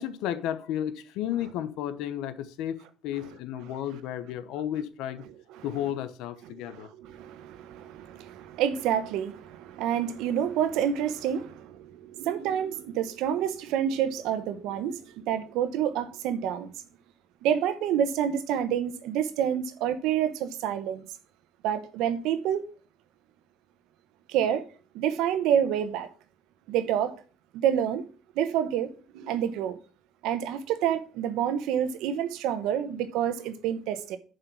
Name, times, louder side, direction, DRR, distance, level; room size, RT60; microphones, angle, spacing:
voice 1, 0.0-5.3 5.6-6.9, left 11 dB, 85° left, 0.9 m, -33 dB
voice 2, 6.5-16.7 17.4-21.0 21.6-22.6 24.3-24.7 24.9-26.1 26.7-27.1 27.5-28.0 28.3-29.8 30.2-34.2, right 9 dB, 85° right, 1.1 m, -28 dB
7.2 x 5.6 x 7.0 m
cardioid pair, 170°, 0 cm